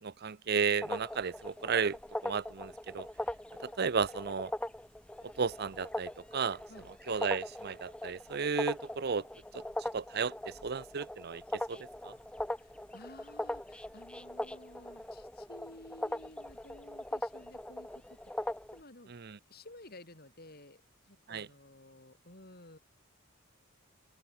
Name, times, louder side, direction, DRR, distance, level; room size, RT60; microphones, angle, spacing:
voice 1, 0.0-2.0 2.2-3.1 3.6-4.5 5.4-6.6 7.1-9.3 9.5-12.1 19.1-19.4 21.3-21.5, right 5 dB, 50° right, 0.6 m, -34 dB
sound 1, 0.8-18.8, left 1 dB, 5° left, 0.5 m, -40 dB
voice 2, 12.5-19.1 19.5-22.8, left 1 dB, 45° left, 4.7 m, -54 dB
open air
head